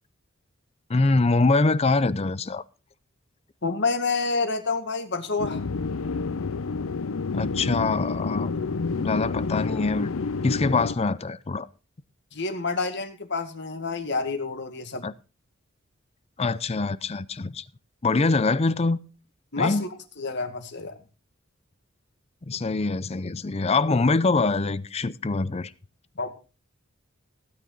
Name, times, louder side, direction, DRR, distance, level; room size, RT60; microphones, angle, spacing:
voice 1, 0.9-2.6 7.3-8.5 8.9-10.1 10.4-11.7 15.0-15.1 16.4-17.6 18.0-19.0 19.6-19.8 22.5-25.7, left 3 dB, 30° left, 0.5 m, -24 dB
voice 2, 3.6-5.6 12.3-15.1 19.5-21.0 26.2-26.3, left 4 dB, 60° left, 2.0 m, -28 dB
drone subway, 5.4-10.9, left 4 dB, 90° left, 0.6 m, -29 dB
17.0 x 9.4 x 4.0 m
head